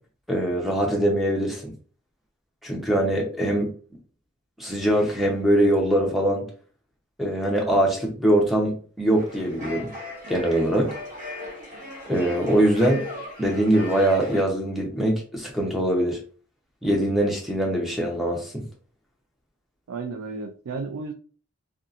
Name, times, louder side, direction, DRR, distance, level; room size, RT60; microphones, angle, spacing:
voice 1, 0.3-1.7 2.6-3.7 4.6-6.5 7.2-9.9 10.3-10.9 12.1-13.1 13.4-16.2 16.8-18.6, right 1 dB, ahead, 0.6 m, -22 dB
sound 1, 9.2-14.4, left 1 dB, 35° right, 0.9 m, -37 dB
voice 2, 19.9-21.1, right 4 dB, 90° right, 0.4 m, -33 dB
2.7 x 2.3 x 2.4 m
head